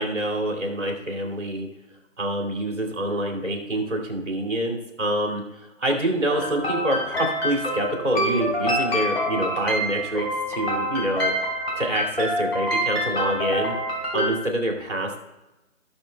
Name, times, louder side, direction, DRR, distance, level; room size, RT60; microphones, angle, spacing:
voice 1, 0.0-1.7 2.2-11.3 11.8-13.8 14.1-15.2, right 1 dB, 60° right, 1 dB, 2.4 m, -26 dB
sound 1, 6.3-14.3, equal, 50° left, 3.3 m, -26 dB
17.5 x 6.4 x 2.2 m, 1.0 s
figure-of-eight pair, 165°, 40 cm